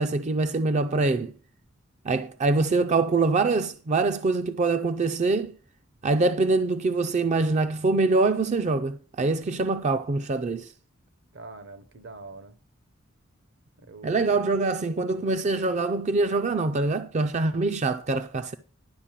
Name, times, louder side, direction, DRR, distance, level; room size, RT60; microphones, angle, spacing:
voice 1, 0.0-1.3 2.0-5.5 6.0-10.7 14.0-18.5, right 3 dB, 35° right, 0.4 m, -24 dB
voice 2, 11.3-12.6 13.8-14.4 15.2-15.3, right 3 dB, 60° right, 0.8 m, -44 dB
11.5 x 4.8 x 7.4 m
head